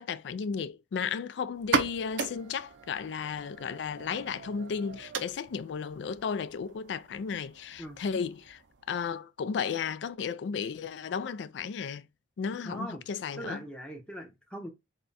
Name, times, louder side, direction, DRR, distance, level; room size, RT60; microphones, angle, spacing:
voice 1, 0.0-8.6 8.9-12.1 12.4-13.6, left 6 dB, 75° left, 0.3 m, -34 dB
sound 1, 1.5-9.0, right 5 dB, 80° right, 0.5 m, -37 dB
voice 2, 12.6-13.0 13.4-14.7, right 1 dB, 5° left, 0.8 m, -40 dB
3.5 x 2.2 x 4.0 m
head